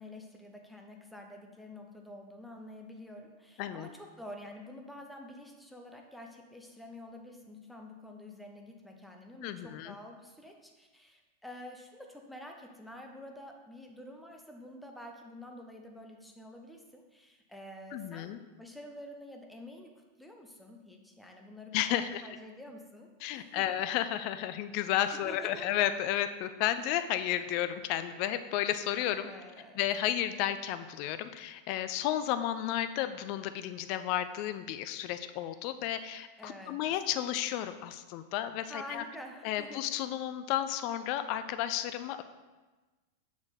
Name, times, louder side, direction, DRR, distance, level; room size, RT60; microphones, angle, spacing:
voice 1, 0.0-19.9 20.2-23.1 23.3-23.8 25.2-25.7 29.2-29.9 36.4-36.8 38.6-39.9, left 1 dB, ahead, 2 dB, 0.8 m, -48 dB
voice 2, 3.6-3.9 9.4-9.9 17.9-18.4 21.7-22.2 23.2-29.3 29.8-39.0 39.4-42.2, left 12 dB, 45° left, 11 dB, 0.4 m, -32 dB
6.3 x 4.7 x 3.9 m, 1.2 s
figure-of-eight pair, 90°, 0 cm